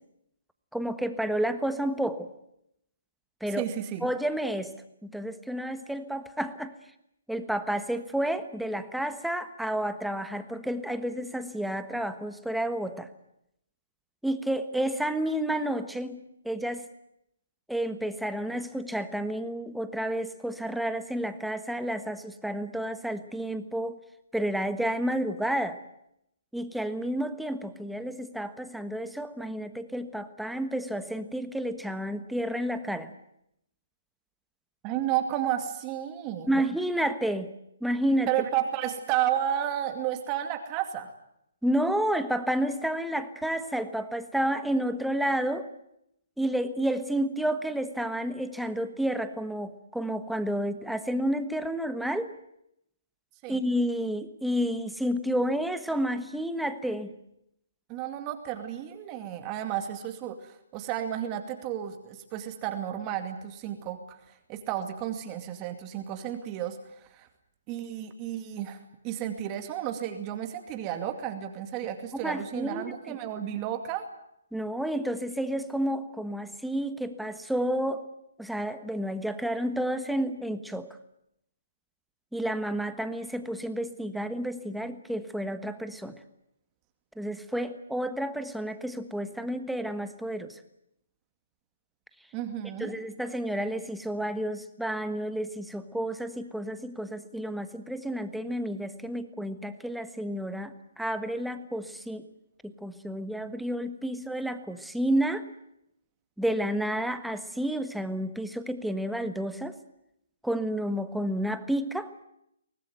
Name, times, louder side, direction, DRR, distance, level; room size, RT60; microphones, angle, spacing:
voice 1, 0.7-2.3 3.4-3.7 4.0-4.7 5.0-6.7 7.3-13.1 14.2-16.8 17.7-24.0 24.3-25.8 26.5-33.1 36.5-37.5 37.8-38.3 41.6-45.7 46.4-52.3 53.5-57.1 72.2-73.2 74.5-78.1 78.4-80.9 82.3-86.2 87.2-90.6 92.8-102.2 102.6-105.4 106.4-109.8 110.4-112.1, right 1 dB, ahead, 9 dB, 1.4 m, -30 dB
voice 2, 3.5-4.0 34.8-36.5 38.3-41.1 53.4-53.6 57.9-64.2 64.5-67.3 67.7-68.8 69.0-74.1 92.3-92.9, right 11 dB, 25° right, 6 dB, 2.4 m, -32 dB
24.0 x 18.5 x 9.2 m, 0.77 s
hypercardioid pair, 155°, 0 cm